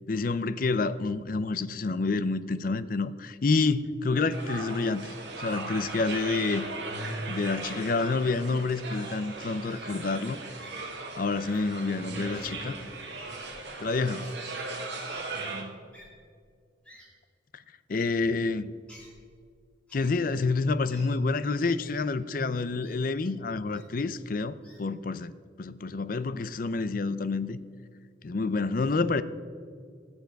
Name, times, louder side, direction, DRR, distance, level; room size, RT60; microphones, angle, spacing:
voice 1, 0.1-6.7 7.3-10.4 11.2-12.7 13.8-14.3 17.5-17.6 17.9-18.7 19.9-25.3 25.6-27.6 28.2-29.2, left 3 dB, 45° left, 0.5 m, -28 dB
sound 1, 4.3-15.6, right 3 dB, 65° right, 1.9 m, -38 dB
voice 2, 6.9-7.3 12.0-12.9 15.3-15.8 28.8-29.1, right 1 dB, 30° right, 1.9 m, -40 dB
Wild animals, 8.9-9.1 9.7-9.9 10.6-10.7 11.4-11.6 12.3-12.5 13.1-13.5 14.2-14.3 15.1-15.2 15.9-16.1 16.8-17.1 17.9-18.1 18.9-19.1 19.9-20.2 20.9-21.1 21.8-22.1 22.8-22.9 23.7-23.9 24.6-24.8, equal, 5° left, 3.1 m, -52 dB
19.0 x 7.2 x 4.6 m
head